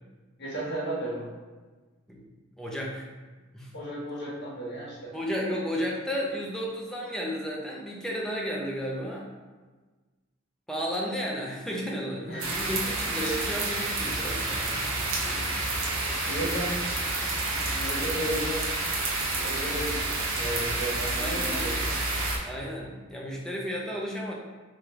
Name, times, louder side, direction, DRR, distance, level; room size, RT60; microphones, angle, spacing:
voice 1, 0.4-1.3 3.7-5.1 12.2-12.5 16.2-16.7 17.5-18.6 19.3-22.0, right 1 dB, 55° left, -7 dB, 1.4 m, -34 dB
voice 2, 2.1-3.0 3.5-3.7 5.1-9.3 10.7-15.5 21.2-21.9 22.4-24.3, equal, 5° left, -3 dB, 0.6 m, -33 dB
sound 1, 12.4-22.4, right 2 dB, 80° right, 0.8 m, -29 dB
3.3 x 3.2 x 3.7 m, 1.3 s
head